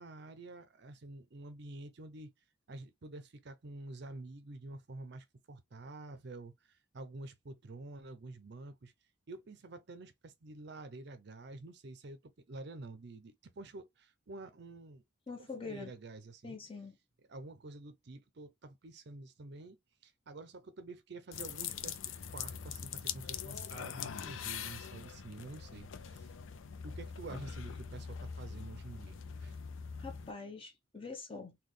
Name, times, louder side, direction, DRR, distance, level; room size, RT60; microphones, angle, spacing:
voice 1, 0.0-2.3 2.7-8.9 9.3-15.0 15.4-16.6 17.3-19.8 20.0-26.3 26.8-29.5, right 2 dB, 55° right, 0.5 m, -49 dB
voice 2, 15.3-15.9 16.4-16.9 30.0-31.6, left 4 dB, 25° left, 0.9 m, -44 dB
sound 1, 21.3-30.3, left 7 dB, 70° left, 0.4 m, -43 dB
3.9 x 2.3 x 3.2 m
head